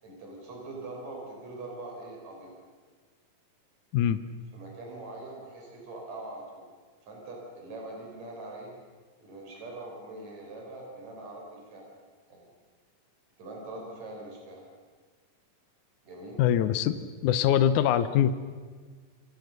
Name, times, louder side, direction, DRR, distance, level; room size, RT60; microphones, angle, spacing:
voice 1, 0.0-2.5 4.5-6.6 7.0-8.7 9.2-11.9 12.3-12.5 13.4-14.6 16.0-16.4, right 2 dB, 50° right, -1 dB, 6.7 m, -42 dB
voice 2, 16.4-18.3, left 10 dB, 70° left, 11 dB, 2.0 m, -23 dB
27.5 x 25.0 x 6.8 m, 1.5 s
omnidirectional pair, 4.3 m